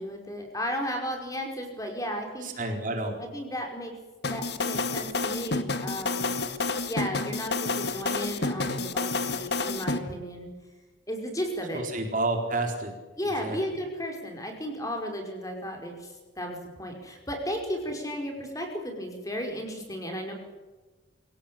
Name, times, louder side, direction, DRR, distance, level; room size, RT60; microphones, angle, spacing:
voice 1, 0.0-2.5 3.2-3.9 4.3-6.3 6.9-10.5 11.1-11.8 13.2-20.3, equal, 15° left, 2 dB, 5.2 m, -34 dB
voice 2, 2.4-3.2 11.7-12.9 13.4-13.6, right 2 dB, 45° right, 3 dB, 4.3 m, -29 dB
sound 1, 4.2-10.0, left 3 dB, 60° left, 1.7 m, -29 dB
25.5 x 17.0 x 8.7 m, 1.2 s
head